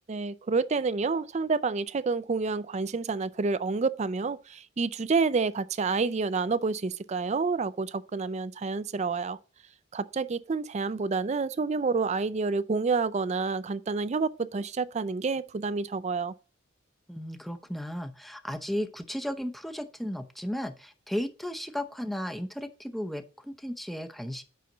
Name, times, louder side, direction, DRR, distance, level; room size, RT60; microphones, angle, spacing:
voice 1, 0.1-9.4 9.9-16.3, right 4 dB, 35° right, 0.4 m, -29 dB
voice 2, 17.1-24.4, equal, ahead, 0.7 m, -35 dB
9.3 x 5.7 x 3.9 m
head